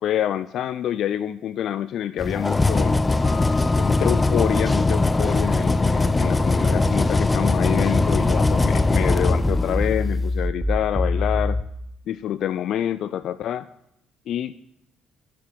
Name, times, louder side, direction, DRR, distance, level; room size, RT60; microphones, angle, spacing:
voice 1, 0.0-3.0 3.8-11.6 12.1-13.7 14.3-14.5, left 10 dB, 55° left, 15 dB, 0.4 m, -27 dB
sound 1, 2.2-10.2, left 3 dB, 20° left, 0.7 m, -21 dB
Piano, 3.2-6.1, left 5 dB, 40° left, 2.5 m, -42 dB
sound 2, 7.8-11.6, left 2 dB, ahead, 1.2 m, -26 dB
10.5 x 7.6 x 9.1 m, 0.77 s
hypercardioid pair, 50°, 0 cm